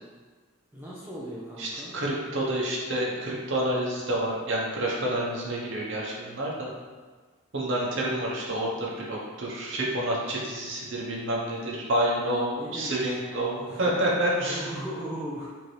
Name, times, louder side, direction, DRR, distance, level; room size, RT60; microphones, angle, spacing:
voice 1, 0.7-2.0 12.1-13.8 14.4-15.5, equal, 10° right, -8 dB, 0.5 m, -38 dB
voice 2, 1.6-6.7 7.5-14.7, right 1 dB, 65° right, -4 dB, 0.9 m, -28 dB
4.5 x 2.8 x 3.2 m, 1.4 s
head